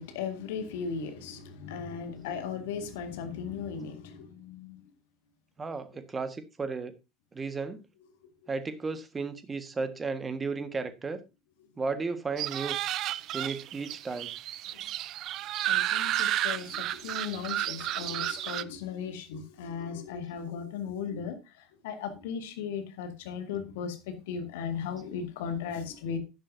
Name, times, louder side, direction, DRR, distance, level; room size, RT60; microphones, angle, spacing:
voice 1, 0.0-4.8 15.7-21.4 21.8-26.2, left 6 dB, 60° left, 1.9 m, -36 dB
voice 2, 5.6-6.9 7.3-7.8 8.5-11.2 11.8-12.8 13.3-14.3, right 4 dB, 20° right, 1.5 m, -34 dB
sound 1, 12.4-18.6, right 13 dB, 45° right, 0.5 m, -32 dB
11.0 x 11.0 x 2.7 m
figure-of-eight pair, 70°, 0 cm